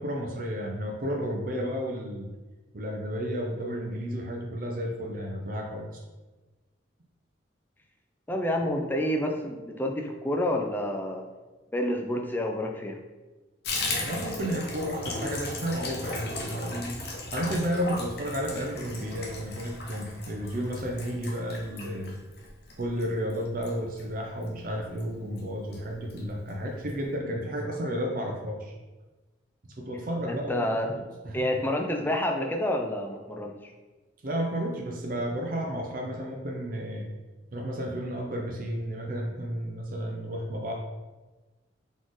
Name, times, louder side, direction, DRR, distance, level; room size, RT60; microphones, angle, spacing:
voice 1, 0.0-2.3 2.7-6.0 14.0-16.9 17.3-22.2 22.8-28.7 29.8-31.5 34.2-37.1 37.5-40.7, equal, 45° right, 1 dB, 0.5 m, -32 dB
voice 2, 8.3-11.2 11.7-13.0 30.3-30.9 31.3-33.7, left 1 dB, 10° left, 2 dB, 0.4 m, -29 dB
Water tap faucet / Bathtub (filling or washing), 13.6-24.6 24.9-25.1 25.4-25.5 25.7-26.2 26.5-26.6 26.9-27.0, left 2 dB, 55° left, 0.9 m, -37 dB
4.1 x 3.0 x 3.8 m, 1.2 s
head